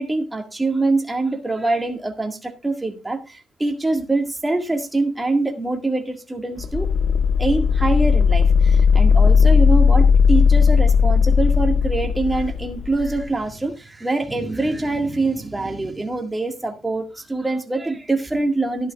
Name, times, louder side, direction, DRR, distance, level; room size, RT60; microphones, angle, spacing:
voice 1, 0.0-6.9 7.4-18.9, right 2 dB, 15° right, 1.9 m, -24 dB
sound 1, 6.6-13.2, left 6 dB, 45° left, 0.7 m, -16 dB
13.5 x 11.5 x 2.4 m
cardioid pair, 90°, 0 cm